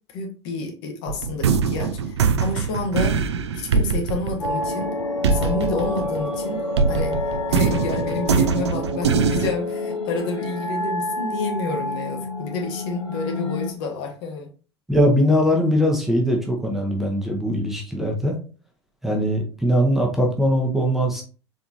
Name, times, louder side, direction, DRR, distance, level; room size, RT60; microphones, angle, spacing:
voice 1, 0.1-3.2 3.5-4.9 5.3-7.2 7.5-14.5, left 3 dB, 50° left, 1.3 m, -29 dB
sound 1, 1.1-6.4 6.8-9.5, right 5 dB, 65° right, 0.5 m, -22 dB
sound 2, 4.4-13.7, left 2 dB, 75° left, 1.3 m, -28 dB
voice 2, 14.9-18.4 19.0-21.2, equal, ahead, 0.8 m, -21 dB
4.2 x 3.5 x 2.7 m
figure-of-eight pair, 85°, 15 cm